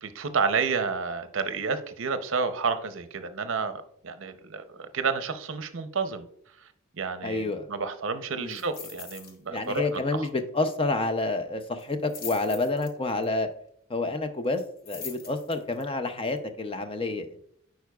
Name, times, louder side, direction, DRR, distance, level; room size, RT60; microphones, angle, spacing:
voice 1, 0.0-6.3 7.0-9.9, right 5 dB, 65° right, 10 dB, 0.6 m, -30 dB
voice 2, 7.2-7.7 8.3-8.6 9.5-13.5 13.9-17.3, left 2 dB, 25° left, 8 dB, 0.5 m, -29 dB
sound 1, 8.5-9.4 9.6-9.9 10.2-10.3 11.8-13.3 14.5-15.8 16.4-16.5, left 6 dB, 45° left, 0.9 m, -42 dB
9.3 x 4.6 x 2.3 m, 0.68 s
head